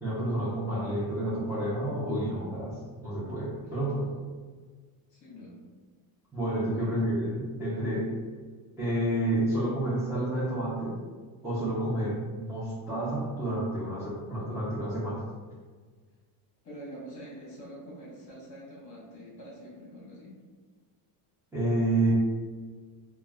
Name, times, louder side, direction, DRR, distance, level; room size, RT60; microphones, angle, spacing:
voice 1, 0.0-4.1 6.3-8.1 8.8-10.9 11.4-15.2 21.5-22.1, right 1 dB, 5° right, -12 dB, 0.4 m, -29 dB
voice 2, 5.1-5.6 6.6-7.0 16.6-20.3, equal, 40° left, -5 dB, 1.0 m, -45 dB
2.2 x 2.2 x 3.2 m, 1.5 s
cardioid pair, 145°, 48 cm